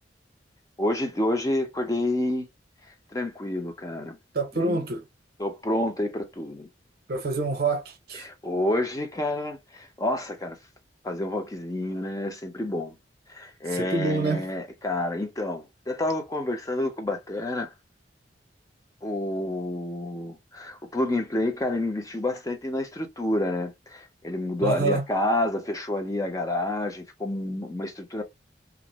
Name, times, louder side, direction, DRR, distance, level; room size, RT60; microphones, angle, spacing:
voice 1, 0.8-2.5 3.1-4.2 4.5-4.8 5.4-6.7 8.1-10.6 11.0-12.9 13.3-17.7 19.0-28.2, left 1 dB, 20° left, 0.6 m, -29 dB
voice 2, 4.3-5.0 7.1-8.3 13.7-14.5 24.6-25.1, right 2 dB, 55° right, 0.7 m, -26 dB
2.5 x 2.0 x 2.9 m
head